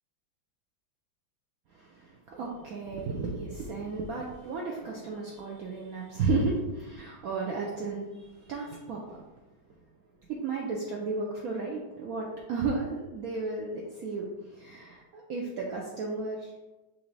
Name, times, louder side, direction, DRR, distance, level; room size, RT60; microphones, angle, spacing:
voice 1, 1.7-9.2 10.3-16.5, right 3 dB, 85° right, -1 dB, 0.7 m, -33 dB
5.9 x 2.6 x 3.2 m, 1.1 s
omnidirectional pair, 2.2 m